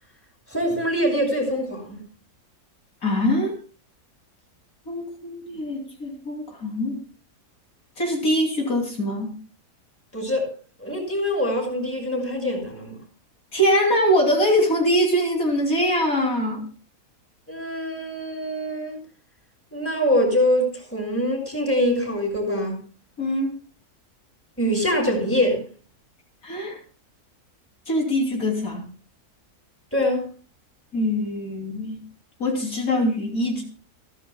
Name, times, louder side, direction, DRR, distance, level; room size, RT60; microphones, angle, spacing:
voice 1, 0.5-2.0 10.1-10.5 10.8-13.0 17.5-19.0 19.7-22.8 24.6-25.6 29.9-30.2, equal, 10° left, 5.8 m, -24 dB
voice 2, 3.0-3.6 4.9-7.0 8.0-9.3 13.5-16.6 23.2-23.5 26.4-26.8 27.9-28.8 30.9-32.0 32.4-33.6, equal, 60° left, 3.5 m, -23 dB
27.5 x 10.5 x 2.3 m
omnidirectional pair, 1.7 m